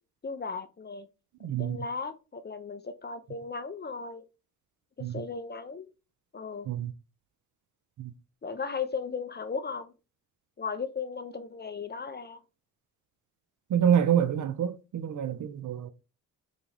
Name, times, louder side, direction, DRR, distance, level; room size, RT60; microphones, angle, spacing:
voice 1, 0.2-1.1 1.6-4.3 5.0-5.9 6.3-6.7 8.4-9.9 10.6-12.4, left 5 dB, 25° left, 0.5 m, -36 dB
voice 2, 1.4-1.8 5.0-5.2 6.7-6.9 8.0-8.1 13.7-15.9, right 9 dB, 50° right, 0.5 m, -27 dB
4.0 x 2.3 x 3.2 m
supercardioid pair, 50°, 40 cm